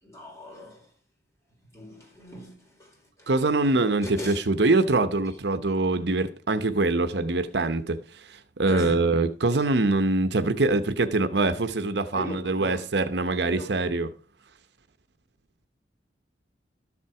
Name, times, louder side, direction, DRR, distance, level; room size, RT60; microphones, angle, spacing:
voice 1, 0.0-0.9 1.7-3.7 4.0-4.4 8.6-9.1 9.5-9.7 12.1-12.9 13.4-14.0, equal, 15° left, 4.7 m, -39 dB
voice 2, 3.3-14.1, right 2 dB, 65° right, 0.9 m, -24 dB
13.0 x 7.2 x 4.8 m
head